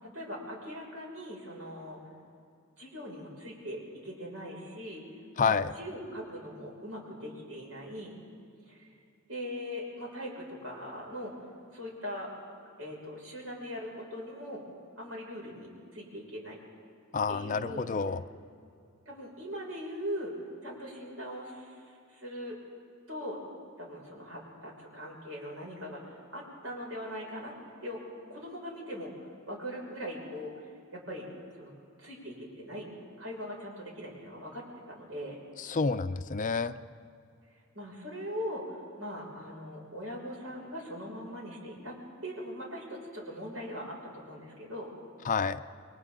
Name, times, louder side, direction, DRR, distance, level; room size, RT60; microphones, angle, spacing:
voice 1, 0.0-2.0 2.8-5.0 5.4-8.2 8.7-8.8 9.3-11.3 11.7-12.3 12.8-14.6 15.0-15.7 15.9-16.6 17.3-17.9 19.1-20.3 20.6-21.7 22.1-22.6 23.1-23.4 23.8-27.5 27.8-28.0 28.3-29.1 29.5-30.6 30.9-31.3 31.5-31.7 32.0-32.9 33.2-35.4 37.7-42.0 42.2-44.9, equal, 80° right, -2 dB, 6.2 m, -40 dB
voice 2, 5.4-5.7 17.1-18.2 35.6-36.8 45.3-45.6, left 5 dB, 40° left, 11 dB, 0.5 m, -29 dB
29.5 x 23.0 x 3.9 m, 2.5 s
head